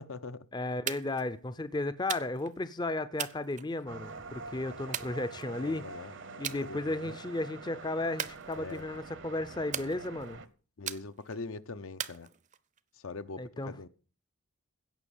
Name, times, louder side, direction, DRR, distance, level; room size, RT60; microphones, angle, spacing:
voice 1, 0.0-0.5 5.5-7.1 8.6-8.8 10.8-12.3 13.0-13.9, left 3 dB, 70° left, 0.7 m, -43 dB
voice 2, 0.5-5.9 6.4-10.4 13.3-13.7, left 2 dB, 20° left, 0.5 m, -34 dB
sound 1, 0.9-1.3 2.1-2.6 3.2-4.1 4.9-5.7 6.4-6.6 7.0-7.4 8.2-9.0 9.7-10.4 10.9-11.4 12.0-12.8, right 9 dB, 35° right, 0.6 m, -39 dB
sound 2, 3.9-10.5, right 4 dB, 55° right, 0.9 m, -46 dB
16.5 x 6.0 x 7.1 m
head